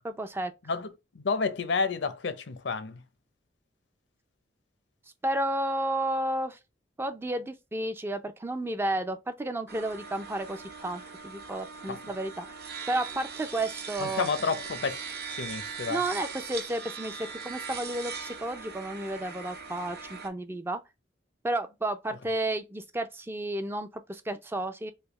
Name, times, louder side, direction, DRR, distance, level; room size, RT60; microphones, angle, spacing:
voice 1, 0.0-0.5 5.2-6.6 7.0-14.3 15.9-20.8 21.4-24.9, right 1 dB, 15° right, 0.4 m, -32 dB
voice 2, 1.1-3.0 11.9-12.0 14.0-15.0 15.3-16.0, left 4 dB, 75° left, 0.6 m, -30 dB
sound 1, 9.7-20.3, right 5 dB, 60° right, 0.9 m, -40 dB
3.4 x 2.7 x 3.0 m
head